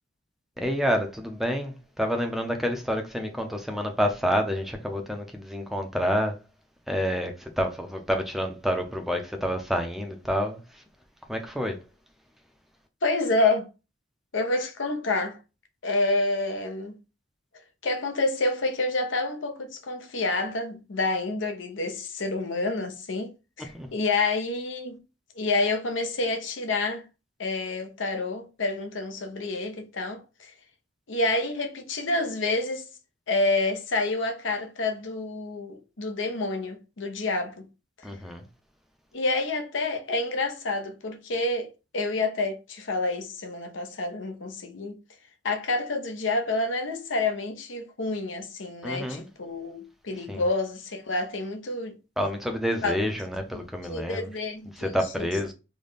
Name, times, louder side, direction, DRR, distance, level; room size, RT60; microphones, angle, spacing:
voice 1, 0.6-6.4 6.9-10.8 11.3-11.8 23.7-23.9 38.0-38.4 48.8-49.3 50.3-50.4 52.2-54.3 54.8-55.5, equal, ahead, 0.5 m, -28 dB
voice 2, 13.0-13.7 14.3-15.4 15.8-16.9 17.8-23.3 23.6-25.0 25.4-27.0 27.4-30.5 31.1-32.8 33.3-37.7 39.1-45.0 45.4-52.0 52.8-53.0 53.5-54.9 55.2-55.3, left 2 dB, 70° left, 0.7 m, -28 dB
3.3 x 2.2 x 3.9 m
head